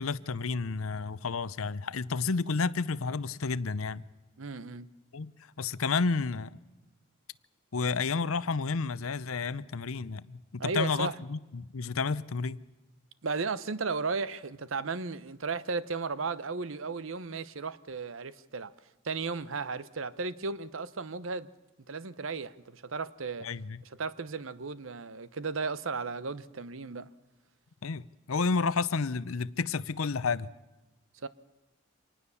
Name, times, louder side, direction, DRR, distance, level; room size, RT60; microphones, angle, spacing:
voice 1, 0.0-4.0 5.1-5.3 5.6-6.6 7.7-12.6 23.4-23.8 27.8-28.0 28.3-30.5, left 4 dB, 90° left, 0.7 m, -31 dB
voice 2, 4.4-4.9 10.6-11.2 13.2-18.7 19.0-21.5 21.9-23.5 23.8-27.1 31.2-31.3, right 4 dB, 75° right, 0.9 m, -35 dB
25.5 x 19.5 x 7.0 m
head